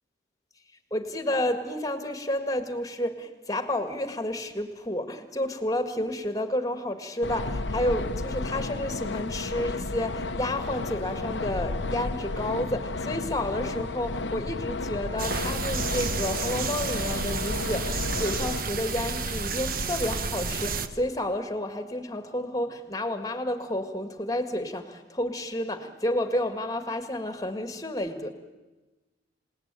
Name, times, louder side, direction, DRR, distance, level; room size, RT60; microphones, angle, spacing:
voice 1, 0.9-28.3, left 1 dB, 20° left, 8 dB, 1.9 m, -30 dB
sound 1, 7.2-18.6, left 3 dB, 70° left, 0.9 m, -32 dB
sound 2, 15.2-20.9, right 4 dB, 50° right, 1.2 m, -31 dB
28.0 x 18.5 x 9.1 m, 1.2 s
head